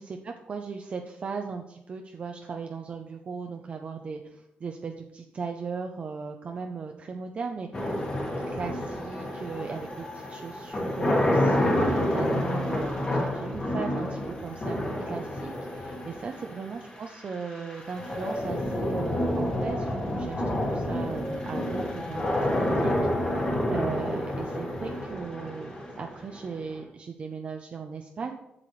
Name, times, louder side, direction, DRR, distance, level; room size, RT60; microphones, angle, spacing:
voice 1, 0.0-8.0 8.5-14.8 15.1-22.3 22.6-28.4, right 5 dB, 35° right, 3 dB, 0.5 m, -37 dB
sound 1, 7.7-26.8, left 1 dB, 30° left, 1.7 m, -29 dB
7.7 x 7.5 x 3.2 m, 0.83 s
wide cardioid pair, 175°, 3 cm